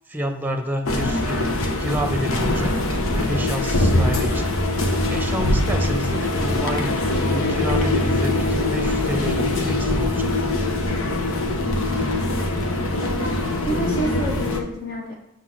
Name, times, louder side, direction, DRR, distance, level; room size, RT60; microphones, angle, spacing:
voice 1, 0.1-2.8 3.1-10.3, equal, 10° right, 6 dB, 0.8 m, -29 dB
sound 1, 0.9-14.6, left 1 dB, 90° left, 1.1 m, -22 dB
voice 2, 11.8-12.5 13.0-15.1, equal, 45° left, -2 dB, 1.0 m, -30 dB
6.7 x 3.9 x 6.4 m, 0.86 s
head